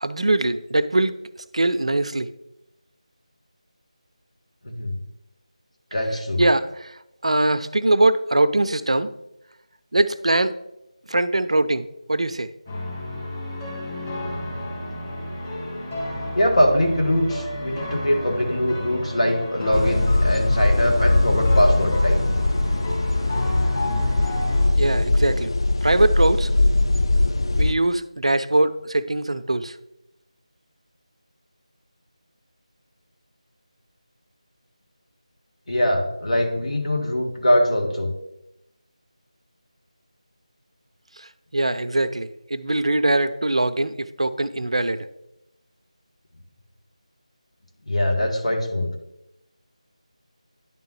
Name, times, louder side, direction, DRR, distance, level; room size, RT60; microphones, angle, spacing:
voice 1, 0.0-1.2 1.5-2.3 6.4-9.1 9.9-10.6 11.1-12.5 24.8-25.5 25.8-26.5 27.6-29.8 41.2-45.1, right 2 dB, 60° right, 14 dB, 0.4 m, -22 dB
voice 2, 5.9-6.4 16.3-22.2 35.7-38.1 47.9-48.9, equal, 65° left, 2 dB, 1.5 m, -22 dB
sound 1, 12.7-24.7, left 1 dB, 20° left, 1.9 m, -32 dB
sound 2, 19.7-27.7, left 2 dB, 45° left, 0.3 m, -21 dB
10.5 x 3.7 x 3.1 m, 0.87 s
figure-of-eight pair, 165°, 4 cm